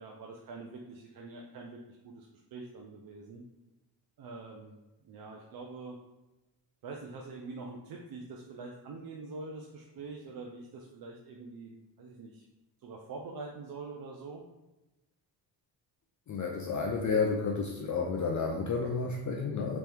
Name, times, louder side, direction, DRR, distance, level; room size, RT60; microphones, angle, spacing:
voice 1, 0.0-3.4 4.2-4.8 5.0-6.0 6.8-12.4 12.8-14.4, right 3 dB, 55° right, 0 dB, 0.6 m, -45 dB
voice 2, 16.3-19.8, left 4 dB, 45° left, 1 dB, 0.5 m, -31 dB
3.2 x 3.0 x 3.4 m, 1.0 s
cardioid pair, 95°, 43 cm